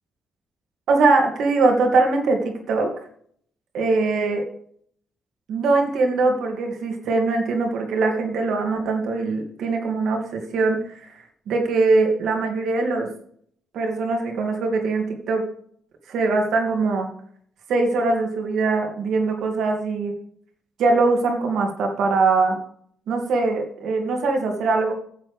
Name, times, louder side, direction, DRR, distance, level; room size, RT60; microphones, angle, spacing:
voice 1, 0.9-2.9 3.7-4.5 5.5-13.1 13.7-15.5 16.1-17.1 17.7-20.1 20.8-22.6 23.1-24.9, right 3 dB, 75° right, 3 dB, 2.4 m, -22 dB
10.5 x 7.4 x 5.0 m, 0.62 s
cardioid pair, 90°, 0 cm